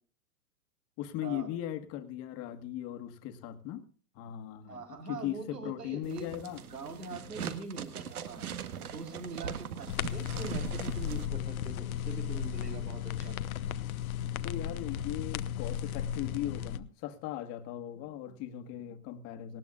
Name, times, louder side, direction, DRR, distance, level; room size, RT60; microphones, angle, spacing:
voice 1, 1.0-3.9 4.1-6.6 7.1-7.3 14.4-19.6, left 12 dB, 30° left, 9 dB, 1.6 m, -38 dB
voice 2, 4.7-6.3 6.6-8.4 8.9-13.4, right 4 dB, 85° right, 4 dB, 4.4 m, -43 dB
sound 1, 6.0-11.3, right 8 dB, 70° right, 1.7 m, -40 dB
sound 2, 9.9-16.8, left 9 dB, 65° left, 1.0 m, -35 dB
19.0 x 16.5 x 2.4 m, 0.40 s
hypercardioid pair, 125°, 46 cm